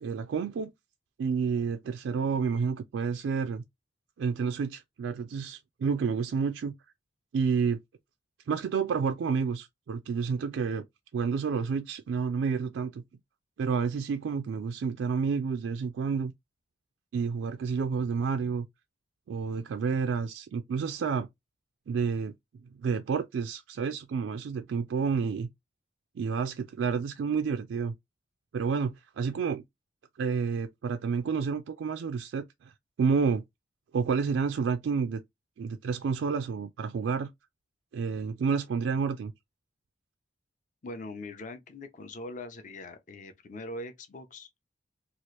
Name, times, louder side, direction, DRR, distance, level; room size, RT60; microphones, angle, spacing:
voice 1, 0.0-0.7 1.2-3.6 4.2-6.7 7.3-7.8 8.5-10.8 11.1-13.0 13.6-16.3 17.1-18.7 19.3-21.3 21.9-22.3 22.8-25.5 26.2-27.9 28.5-29.6 30.2-32.7 33.0-33.4 33.9-35.2 35.6-37.3 37.9-39.3, right 5 dB, 85° right, 0.3 m, -29 dB
voice 2, 40.8-44.5, left 2 dB, 45° left, 0.5 m, -41 dB
2.9 x 2.4 x 3.1 m
head